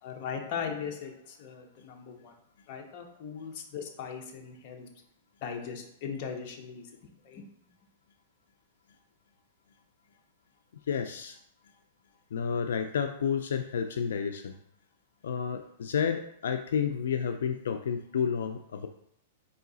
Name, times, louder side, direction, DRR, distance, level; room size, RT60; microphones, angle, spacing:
voice 1, 0.0-2.3 2.7-4.9 5.4-6.9 7.2-7.4, left 6 dB, 40° left, 2 dB, 0.7 m, -39 dB
voice 2, 10.9-11.4 12.3-14.6 15.2-18.9, left 7 dB, 85° left, 6 dB, 0.3 m, -30 dB
3.8 x 2.7 x 3.9 m, 0.70 s
hypercardioid pair, 155°, 0 cm